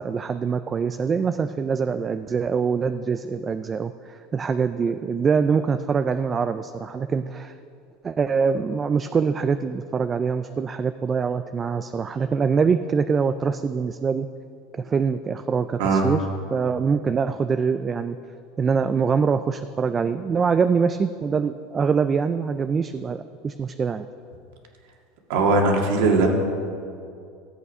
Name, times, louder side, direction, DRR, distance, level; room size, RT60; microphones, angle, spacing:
voice 1, 0.0-7.5 8.0-14.3 14.7-18.2 18.6-24.1, right 5 dB, 25° right, 10 dB, 0.3 m, -24 dB
voice 2, 25.3-26.3, right 3 dB, 75° right, 1 dB, 1.9 m, -19 dB
14.0 x 8.1 x 5.5 m, 2.4 s
supercardioid pair, 135°, 0 cm